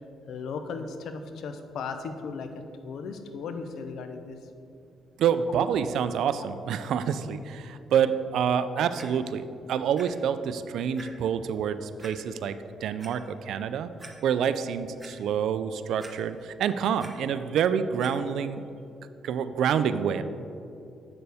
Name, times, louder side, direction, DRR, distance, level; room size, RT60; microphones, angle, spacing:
voice 1, 0.3-2.5 2.8-4.4, left 5 dB, 75° left, 7 dB, 0.6 m, -36 dB
voice 2, 5.2-12.6 12.8-13.9 14.2-18.6 19.2-20.2, right 8 dB, 75° right, 12 dB, 0.3 m, -27 dB
Clock, 8.9-9.0 10.0-10.1 10.5-10.6 11.0-11.1 12.0-12.1 12.8-13.1 13.6-13.7 14.0-14.1 14.6-15.1 16.0-16.5 16.8-17.1 18.0-18.1 18.8-18.9, right 2 dB, 20° right, 1.0 m, -45 dB
7.8 x 6.7 x 3.4 m, 2.6 s
cardioid pair, 90°, 0 cm